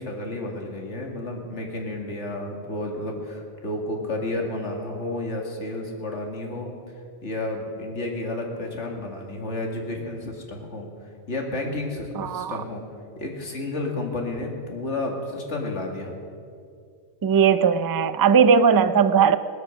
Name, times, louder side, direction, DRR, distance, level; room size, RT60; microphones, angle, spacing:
voice 1, 0.0-6.7 7.2-10.9 11.3-12.8 13.2-16.1, left 2 dB, 85° left, 1 dB, 2.5 m, -31 dB
voice 2, 12.1-12.6 17.2-19.4, right 6 dB, 35° right, 13 dB, 0.3 m, -18 dB
18.5 x 12.5 x 6.3 m, 2.3 s
omnidirectional pair, 1.2 m